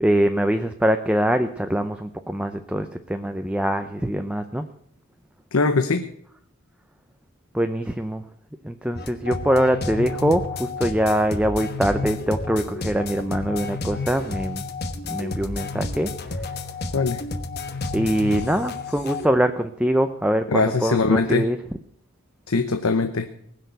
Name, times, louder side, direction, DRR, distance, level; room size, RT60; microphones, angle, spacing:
voice 1, 0.0-4.7 7.5-8.2 8.6-14.6 15.1-16.1 17.9-21.6, right 1 dB, 5° right, 7 dB, 0.5 m, -23 dB
voice 2, 5.5-6.1 16.9-17.2 20.5-21.5 22.5-23.3, left 3 dB, 80° left, 8 dB, 0.9 m, -21 dB
sound 1, 8.9-19.2, left 3 dB, 45° left, 1.2 m, -31 dB
19.5 x 6.6 x 8.1 m, 0.70 s
head